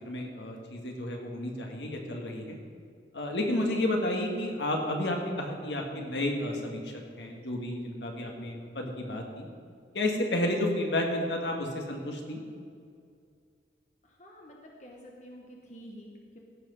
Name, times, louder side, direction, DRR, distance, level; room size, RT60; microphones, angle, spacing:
voice 1, 0.0-2.6 3.1-9.5 9.9-12.4, left 1 dB, 70° left, 1 dB, 1.6 m, -31 dB
voice 2, 14.0-16.4, equal, 40° left, -1 dB, 1.1 m, -49 dB
15.5 x 5.8 x 5.4 m, 2.3 s
head